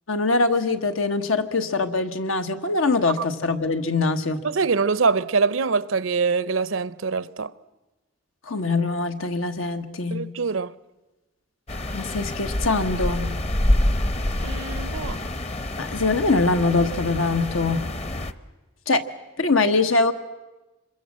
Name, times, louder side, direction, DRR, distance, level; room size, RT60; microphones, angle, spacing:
voice 1, 0.1-4.4 8.5-10.2 11.9-13.3 15.8-17.8 18.9-19.0 19.4-20.1, left 3 dB, 90° left, 1.5 m, -23 dB
voice 2, 4.4-7.5 10.1-10.7 14.4-15.2, right 4 dB, 80° right, 0.7 m, -24 dB
sound 1, 11.7-18.3, left 1 dB, 30° left, 0.8 m, -26 dB
26.5 x 22.5 x 7.5 m
head